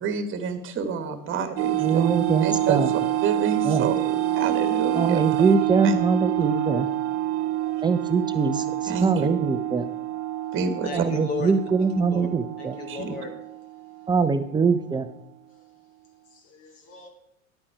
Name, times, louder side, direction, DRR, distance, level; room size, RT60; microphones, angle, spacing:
voice 1, 0.0-2.1 2.4-5.2 5.8-6.0 8.9-9.3 10.5-11.0 12.9-13.1, right 6 dB, 30° right, 9 dB, 1.5 m, -28 dB
sound 1, 1.6-14.6, right 14 dB, 45° right, 1.1 m, -27 dB
voice 2, 1.8-2.9 3.6-3.9 5.0-6.9 7.8-8.6 9.0-9.8 10.9-12.7 14.1-15.1, right 5 dB, 10° right, 10 dB, 0.7 m, -23 dB
voice 3, 10.8-11.6 12.1-12.3 12.6-13.3 15.5-15.6 16.3-17.1, left 6 dB, 55° left, 3 dB, 2.5 m, -35 dB
10.5 x 8.6 x 4.8 m, 0.75 s
hypercardioid pair, 95°, 42 cm